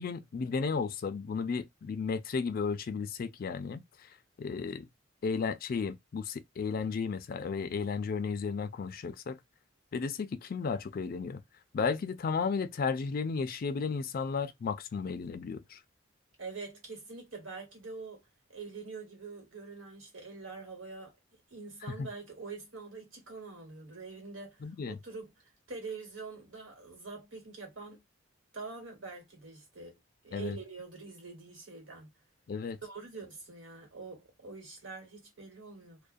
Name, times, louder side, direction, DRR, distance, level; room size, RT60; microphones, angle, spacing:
voice 1, 0.0-3.8 4.4-4.9 5.2-9.4 9.9-11.4 11.7-15.8 21.9-22.1 24.6-25.0 30.3-30.6 32.5-32.8, left 5 dB, 50° left, 0.4 m, -34 dB
voice 2, 16.4-18.2 18.5-21.1 21.5-24.6 24.9-25.3 25.7-28.0 28.5-30.0 30.2-32.1 32.8-36.0, right 4 dB, 85° right, 1.4 m, -45 dB
2.3 x 2.1 x 2.5 m
head